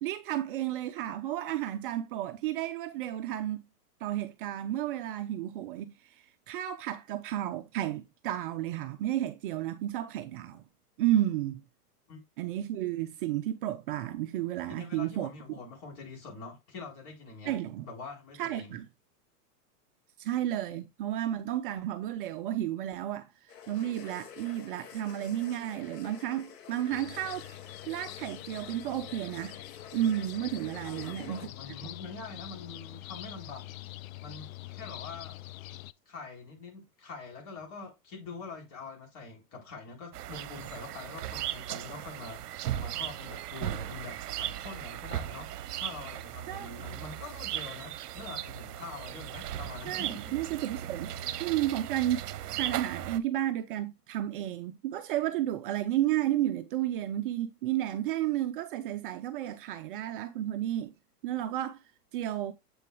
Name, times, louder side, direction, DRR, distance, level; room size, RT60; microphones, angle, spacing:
voice 1, 0.0-3.6 4.0-10.6 11.0-11.6 12.4-15.3 17.5-17.9 18.4-18.9 20.2-27.6 27.9-29.6 29.9-31.5 46.5-46.7 49.9-51.1 51.4-52.2 52.5-60.9 61.2-61.8 62.1-62.5, right 12 dB, 35° right, 0.5 m, -32 dB
voice 2, 14.7-18.8 30.8-33.9 34.2-35.4 36.1-50.4, left 4 dB, 40° left, 4.2 m, -45 dB
sound 1, 23.5-31.5, left 8 dB, 85° left, 2.1 m, -49 dB
sound 2, 26.9-35.9, left 16 dB, 60° left, 0.5 m, -45 dB
sound 3, 40.1-53.2, right 12 dB, 75° right, 0.8 m, -37 dB
7.7 x 6.4 x 2.2 m
hypercardioid pair, 135°, 47 cm